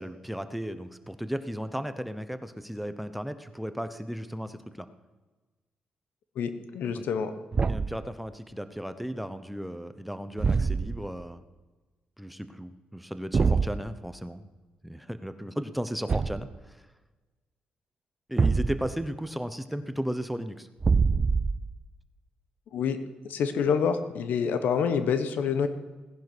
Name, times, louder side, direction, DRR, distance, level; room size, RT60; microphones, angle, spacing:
voice 1, 0.0-4.9 6.9-7.0 7.7-11.4 12.2-14.5 14.8-16.8 18.3-20.7, equal, ahead, 11 dB, 0.9 m, -35 dB
voice 2, 6.4-7.3 22.7-23.0 23.3-25.7, left 6 dB, 80° left, 10 dB, 1.2 m, -27 dB
Thump thud, 7.5-8.0 10.4-11.1 13.3-13.8 16.1-16.6 18.4-19.0 20.8-21.8, right 4 dB, 35° right, 0.4 m, -25 dB
17.5 x 10.5 x 6.2 m, 1.2 s
cardioid pair, 85°, 3 cm